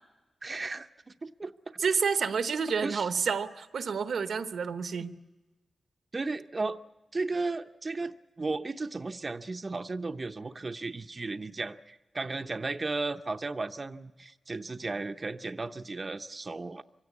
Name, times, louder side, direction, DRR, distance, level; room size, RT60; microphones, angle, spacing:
voice 1, 0.4-0.9 1.2-1.5 2.8-3.1 6.1-6.8 7.1-16.8, right 3 dB, 40° right, 7 dB, 0.7 m, -35 dB
voice 2, 1.8-5.1, right 6 dB, 85° right, 10 dB, 1.0 m, -29 dB
24.0 x 16.5 x 8.4 m, 1.2 s
cardioid pair, 75°, 0 cm